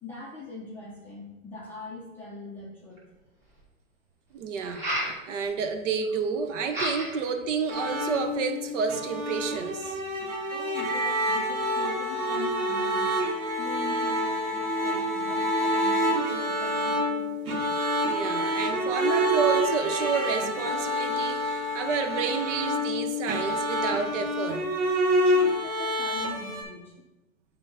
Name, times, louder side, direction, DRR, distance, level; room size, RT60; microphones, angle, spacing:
voice 1, 0.0-3.0 10.5-13.1 13.6-17.2 25.3-26.9, left 3 dB, 5° left, -8 dB, 0.5 m, -42 dB
sound 1, 3.0-3.1 4.6-5.2 6.7-7.3 7.7-8.2, equal, 25° right, 2.1 m, -31 dB
voice 2, 4.3-10.0 18.0-24.7 25.2-25.4, right 5 dB, 60° right, 7 dB, 0.8 m, -30 dB
sound 2, 7.7-26.6, equal, 75° right, 1.6 m, -27 dB
7.6 x 2.9 x 5.3 m, 1.0 s
hypercardioid pair, 145°, 43 cm